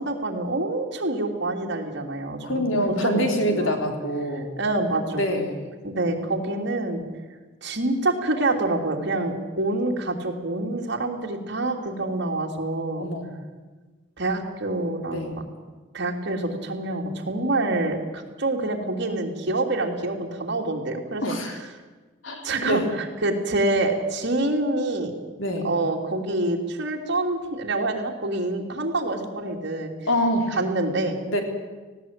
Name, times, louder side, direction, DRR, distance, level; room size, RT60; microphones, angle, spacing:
voice 1, 0.0-2.4 2.9-3.7 4.6-5.2 5.8-7.0 7.6-13.1 14.2-15.4 15.9-21.3 22.4-25.1 25.6-29.9 30.5-31.2, right 2 dB, 65° right, 1 dB, 3.1 m, -26 dB
voice 2, 2.4-4.5 5.1-5.6 13.0-13.3 15.1-15.3 21.2-21.6 22.2-22.9 25.4-25.7 30.1-30.5 31.3-31.4, equal, 90° left, 3 dB, 3.6 m, -25 dB
18.5 x 16.5 x 9.0 m, 1.3 s
head